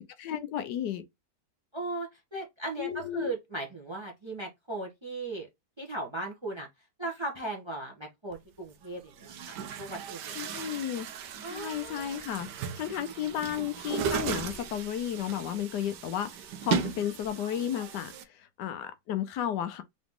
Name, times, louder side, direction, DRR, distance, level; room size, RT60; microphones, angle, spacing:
voice 1, 0.2-1.0 2.8-3.3 10.3-11.1 11.5-12.5 12.7-19.8, left 10 dB, 75° left, 1.2 m, -33 dB
voice 2, 1.7-5.5 5.8-6.7 7.0-10.7 11.4-12.1, right 2 dB, 20° right, 0.8 m, -38 dB
Chatter / Gurgling / Tap, 8.3-8.4 9.1-18.2, right 7 dB, 85° right, 1.3 m, -36 dB
3.9 x 3.0 x 3.6 m
omnidirectional pair, 1.8 m